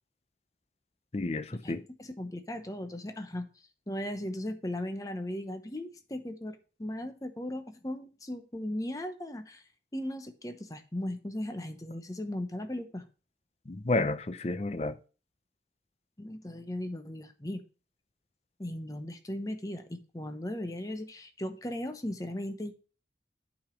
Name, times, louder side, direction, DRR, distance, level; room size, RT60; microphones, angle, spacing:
voice 1, 1.1-1.8 13.7-15.0, left 2 dB, 35° left, 0.5 m, -31 dB
voice 2, 2.0-3.5 3.9-9.6 9.9-13.0 16.2-17.6 18.6-22.7, left 1 dB, 20° left, 0.9 m, -37 dB
8.8 x 5.1 x 5.1 m
head